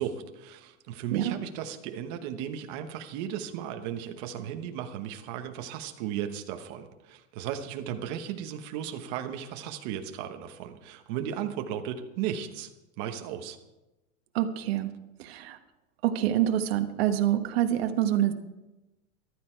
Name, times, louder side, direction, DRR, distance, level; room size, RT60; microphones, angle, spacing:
voice 1, 0.0-12.7 13.0-13.6, right 9 dB, 35° right, 6 dB, 1.1 m, -35 dB
voice 2, 14.3-14.9 15.2-15.6 16.0-18.3, right 11 dB, 50° right, 6 dB, 1.3 m, -26 dB
14.5 x 12.5 x 4.5 m, 1.0 s
supercardioid pair, 175°, 38 cm